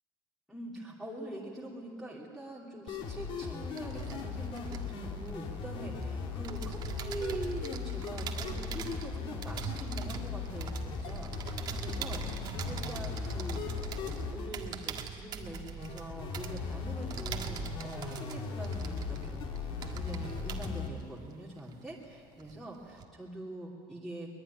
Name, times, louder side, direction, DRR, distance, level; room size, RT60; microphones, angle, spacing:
voice 1, 0.5-24.3, right 1 dB, ahead, -4 dB, 2.8 m, -44 dB
sound 1, 2.9-20.9, left 5 dB, 45° left, 3.0 m, -38 dB
sound 2, 3.4-6.0 6.4-22.1 22.4-23.1, right 7 dB, 35° right, 1.9 m, -42 dB
23.0 x 21.0 x 9.9 m, 2.3 s
cardioid pair, 155°, 11 cm